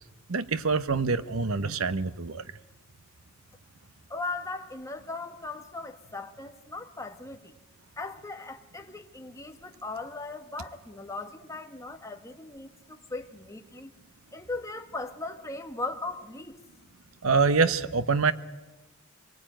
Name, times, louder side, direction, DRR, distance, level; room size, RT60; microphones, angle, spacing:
voice 1, 0.3-2.4 17.2-18.3, right 4 dB, 90° right, 1.0 m, -25 dB
voice 2, 4.1-7.5 8.0-13.9 14.3-16.9, left 3 dB, 15° left, 1.5 m, -38 dB
25.5 x 19.5 x 9.0 m
head